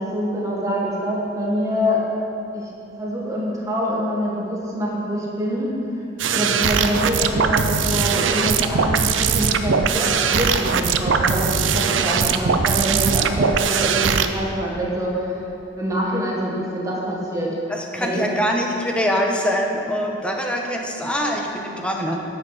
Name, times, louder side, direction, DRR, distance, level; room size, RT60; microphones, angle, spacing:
voice 1, 0.0-2.0 2.5-2.7 3.0-5.7 6.3-15.4 15.8-17.5 18.0-18.4, equal, 15° right, -4 dB, 1.6 m, -25 dB
sound 1, 6.2-14.3, right 6 dB, 70° right, 0.5 m, -20 dB
voice 2, 17.7-22.2, equal, 5° left, 1 dB, 1.0 m, -24 dB
10.0 x 8.1 x 5.7 m, 2.9 s
head